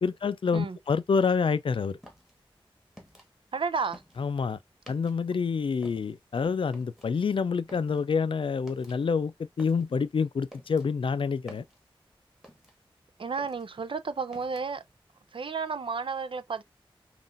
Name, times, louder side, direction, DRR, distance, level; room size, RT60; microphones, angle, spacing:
voice 1, 0.0-2.0 4.2-4.6 4.9-11.6, left 5 dB, 65° left, 0.4 m, -27 dB
sound 1, 2.0-5.4 5.7-13.0 13.3-14.9, equal, 5° right, 1.4 m, -53 dB
voice 2, 3.5-4.0 13.2-14.8 15.3-16.6, right 5 dB, 65° right, 0.5 m, -32 dB
5.5 x 2.5 x 2.5 m
wide cardioid pair, 75°, 9 cm